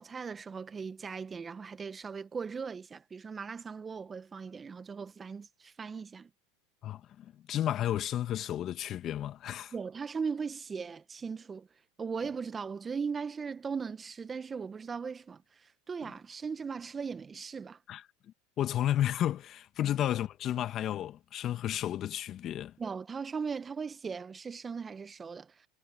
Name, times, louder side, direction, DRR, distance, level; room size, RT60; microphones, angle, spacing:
voice 1, 0.0-6.3 9.7-11.7 12.0-17.8 22.8-25.7, right 5 dB, 25° right, 1.3 m, -38 dB
voice 2, 6.8-9.7 16.0-16.1 17.9-18.0 18.6-22.7, left 12 dB, 40° left, 1.8 m, -32 dB
hypercardioid pair, 95°, 0 cm